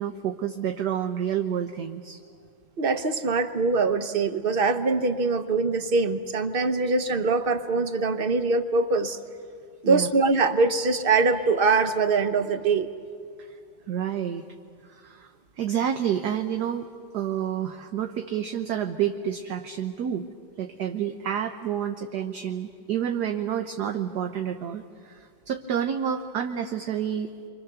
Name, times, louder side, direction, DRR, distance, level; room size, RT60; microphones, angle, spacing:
voice 1, 0.0-2.2 9.9-10.1 13.4-13.5 13.9-14.4 15.0-15.3 15.6-16.9 17.1-20.3 20.6-27.3, right 9 dB, 65° right, 7 dB, 1.3 m, -29 dB
voice 2, 2.8-9.2 9.8-12.9, right 4 dB, 45° right, 10 dB, 0.7 m, -23 dB
29.0 x 24.5 x 6.8 m, 2.2 s
omnidirectional pair, 2.0 m